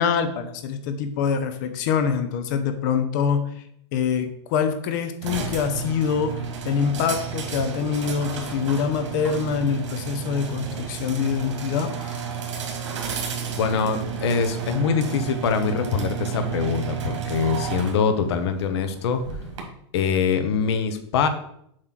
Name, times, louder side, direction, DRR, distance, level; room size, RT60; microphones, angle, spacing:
voice 1, 0.0-3.6 3.9-12.2, left 6 dB, 40° left, 9 dB, 0.7 m, -25 dB
sound 1, 5.2-19.6, right 7 dB, 85° right, 2.1 m, -32 dB
voice 2, 13.5-19.2 19.9-21.3, left 6 dB, 60° left, 9 dB, 1.0 m, -23 dB
7.5 x 3.3 x 5.9 m, 0.71 s
supercardioid pair, 170°, 15 cm